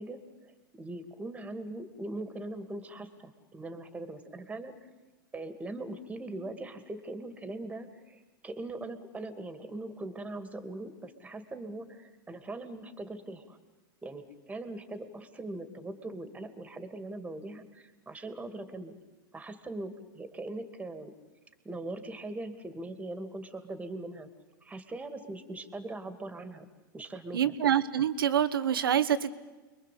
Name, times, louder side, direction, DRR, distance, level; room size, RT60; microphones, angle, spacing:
voice 1, 0.0-4.9 5.3-13.6 14.0-18.9 19.3-21.1 21.6-24.3 24.6-26.7 26.9-27.5, right 2 dB, 10° right, 10 dB, 2.6 m, -41 dB
voice 2, 27.3-29.3, right 9 dB, 85° right, 13 dB, 1.5 m, -26 dB
30.0 x 22.5 x 8.7 m, 1.2 s
hypercardioid pair, 115°, 12 cm